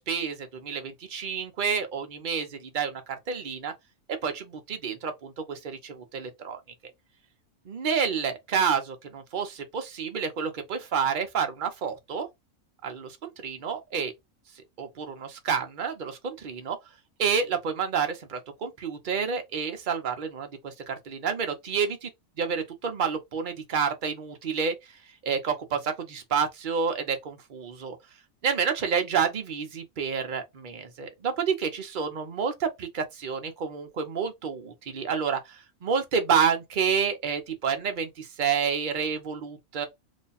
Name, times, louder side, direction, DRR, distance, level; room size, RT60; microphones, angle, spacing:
voice 1, 0.0-3.7 4.1-6.6 7.7-12.3 12.8-14.1 14.8-16.8 17.2-22.1 22.4-24.7 25.2-28.0 28.4-39.9, right 6 dB, 45° right, 0.8 m, -29 dB
3.1 x 2.2 x 4.0 m
omnidirectional pair, 1.4 m